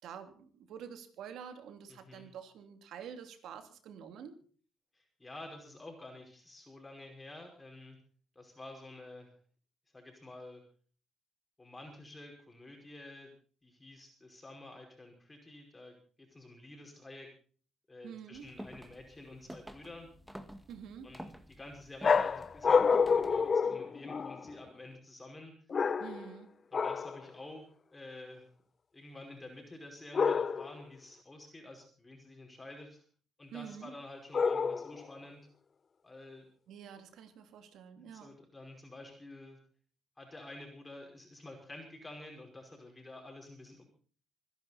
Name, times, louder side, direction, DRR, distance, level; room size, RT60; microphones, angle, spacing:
voice 1, 0.0-4.4 18.0-18.4 20.7-21.1 26.0-26.5 33.5-33.9 36.7-38.3, right 8 dB, 80° right, 7 dB, 2.8 m, -47 dB
voice 2, 1.9-2.3 4.9-8.0 8.4-9.3 9.9-10.6 11.6-13.3 13.6-17.3 17.9-20.1 21.0-21.2 21.5-25.5 26.7-28.5 28.9-33.0 33.4-35.4 36.0-36.4 38.0-39.6 40.2-43.8, left 2 dB, 20° left, 2 dB, 5.2 m, -50 dB
sound 1, 18.3-23.6, equal, 5° right, 1.9 m, -50 dB
sound 2, 22.0-24.5 25.7-26.3 26.7-27.2 30.1-30.8 34.3-35.1, left 5 dB, 40° left, 0.7 m, -28 dB
26.0 x 10.5 x 4.2 m, 0.43 s
cardioid pair, 90°, 0 cm